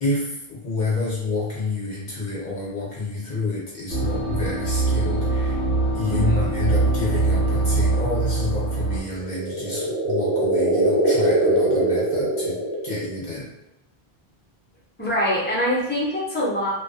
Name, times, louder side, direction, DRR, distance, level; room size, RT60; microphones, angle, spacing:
voice 1, 0.0-5.6 5.9-12.6 12.8-13.5, left 2 dB, 50° left, -6 dB, 0.8 m, -28 dB
sound 1, 3.9-9.0, right 3 dB, 50° right, 0.8 m, -23 dB
voice 2, 6.0-6.5 15.0-16.7, equal, 10° left, -7 dB, 0.7 m, -24 dB
sound 2, 9.1-13.3, right 1 dB, 80° right, 0.9 m, -22 dB
2.5 x 2.3 x 2.3 m, 0.88 s
omnidirectional pair, 1.0 m